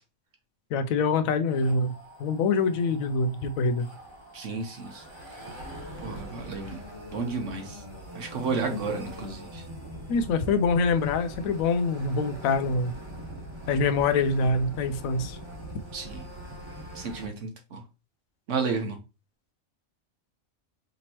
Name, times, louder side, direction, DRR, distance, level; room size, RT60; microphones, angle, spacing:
voice 1, 0.7-3.9 8.7-8.8 10.1-13.0 13.7-15.4, left 4 dB, 80° left, 1.0 m, -25 dB
sound 1, 1.4-17.3, equal, 20° right, 1.2 m, -42 dB
voice 2, 4.3-5.0 6.0-6.8 7.1-7.8 8.1-9.6 15.9-16.2 16.9-17.8 18.5-19.0, right 4 dB, 65° right, 1.3 m, -32 dB
5.2 x 2.9 x 2.9 m
omnidirectional pair, 1.4 m